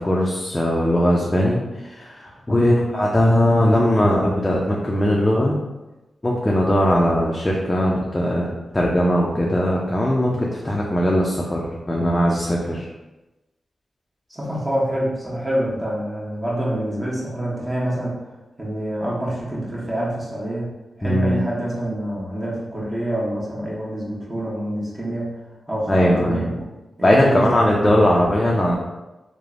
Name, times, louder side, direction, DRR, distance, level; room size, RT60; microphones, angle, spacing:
voice 1, 0.0-5.6 6.2-12.8 21.0-21.4 25.9-26.5 27.0-28.8, equal, 25° left, -3 dB, 0.4 m, -19 dB
voice 2, 14.3-18.2 18.6-20.7 21.0-25.3 25.7-26.5 27.0-27.6, right 1 dB, 20° right, -6 dB, 1.1 m, -26 dB
3.1 x 2.1 x 2.4 m, 1.0 s
cardioid pair, 45°, 0 cm